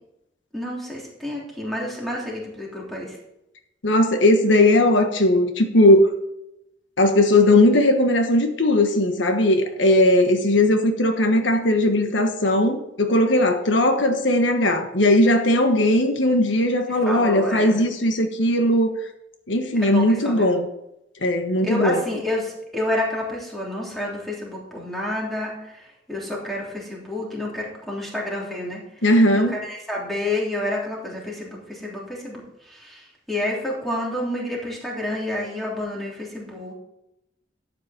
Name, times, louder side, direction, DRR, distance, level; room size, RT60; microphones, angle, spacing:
voice 1, 0.5-3.2 17.0-17.8 19.7-20.5 21.6-29.0 29.3-36.7, left 1 dB, ahead, -4 dB, 3.3 m, -29 dB
voice 2, 3.8-6.1 7.0-18.9 19.5-20.6 21.2-22.0 29.0-29.6, left 1 dB, 80° left, 5 dB, 1.3 m, -18 dB
12.5 x 8.6 x 4.3 m, 0.84 s
head